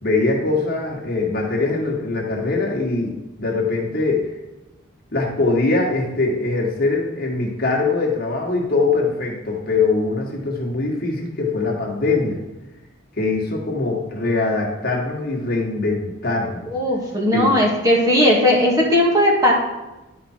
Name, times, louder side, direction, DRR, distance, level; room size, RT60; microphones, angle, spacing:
voice 1, 0.0-4.3 5.1-12.4 13.2-16.7 17.3-17.5, left 3 dB, 45° left, -1 dB, 1.8 m, -22 dB
voice 2, 16.7-19.5, left 1 dB, 20° right, -3 dB, 1.8 m, -17 dB
11.0 x 4.8 x 4.4 m, 1.1 s
head